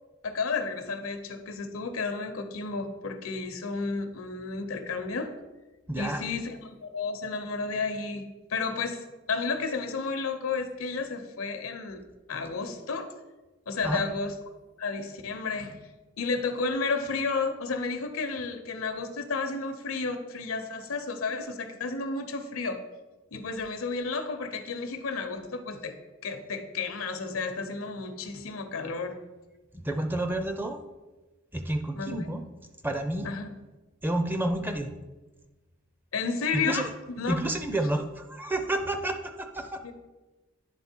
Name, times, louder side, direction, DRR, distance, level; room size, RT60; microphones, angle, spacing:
voice 1, 0.2-5.3 6.0-12.0 12.3-13.1 13.7-14.3 14.8-15.8 16.2-22.8 23.3-26.0 26.2-29.2 32.0-32.3 33.2-33.6 36.1-36.9 37.2-37.4 39.8-39.9, left 4 dB, 80° left, 7 dB, 0.8 m, -32 dB
voice 2, 5.9-6.2 13.8-14.0 29.8-30.8 31.5-32.4 32.8-33.3 34.0-34.9 36.5-36.9 37.3-39.8, right 1 dB, 10° right, 6 dB, 0.4 m, -30 dB
9.7 x 3.6 x 4.4 m, 1.1 s
head